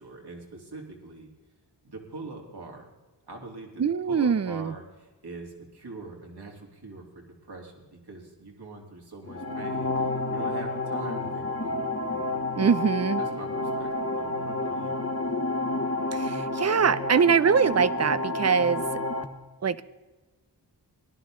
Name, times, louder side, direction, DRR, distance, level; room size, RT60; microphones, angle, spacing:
voice 1, 0.0-1.3 1.8-2.9 3.3-3.7 4.1-12.6 13.2-15.0, right 2 dB, 65° right, 0 dB, 3.3 m, -43 dB
voice 2, 3.8-4.7 12.6-13.2 16.1-18.8 19.6-19.8, right 6 dB, 40° right, 17 dB, 0.6 m, -23 dB
sound 1, 9.2-19.2, left 2 dB, 35° left, 1.5 m, -30 dB
18.5 x 11.5 x 3.8 m, 1.2 s
cardioid pair, 55°, 42 cm